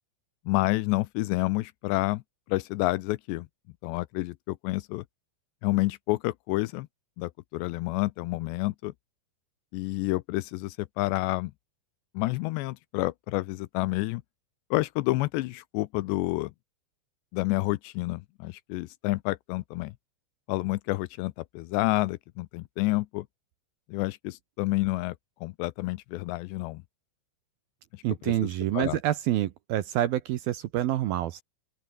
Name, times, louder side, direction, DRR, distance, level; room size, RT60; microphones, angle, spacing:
voice 1, 0.5-2.2 2.5-3.5 3.8-5.0 5.6-6.9 7.2-8.9 9.7-11.5 12.1-14.2 14.7-16.5 17.3-19.9 20.5-23.3 23.9-25.2 25.4-26.8 27.9-28.0 28.4-28.5 28.7-29.0, left 20 dB, 85° left, 2.7 m, -29 dB
voice 2, 28.0-31.4, right 13 dB, 75° right, 2.4 m, -27 dB
open air
omnidirectional pair, 5.3 m